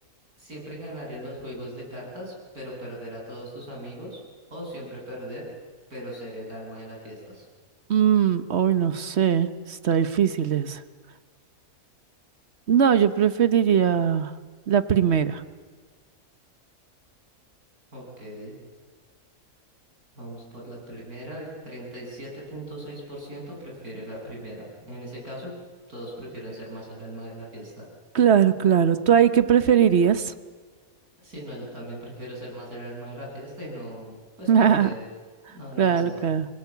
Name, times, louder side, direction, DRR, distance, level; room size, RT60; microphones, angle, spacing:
voice 1, 0.4-4.2 4.5-5.5 5.9-7.5 17.9-18.6 20.1-25.5 25.9-27.8 31.2-35.0 35.5-36.3, equal, 80° right, -2 dB, 8.4 m, -39 dB
voice 2, 7.9-10.8 12.7-14.3 14.7-15.4 28.1-30.3 34.5-34.9 35.8-36.5, right 8 dB, 50° right, 12 dB, 1.2 m, -20 dB
27.0 x 21.0 x 8.4 m, 1.5 s
omnidirectional pair, 1.6 m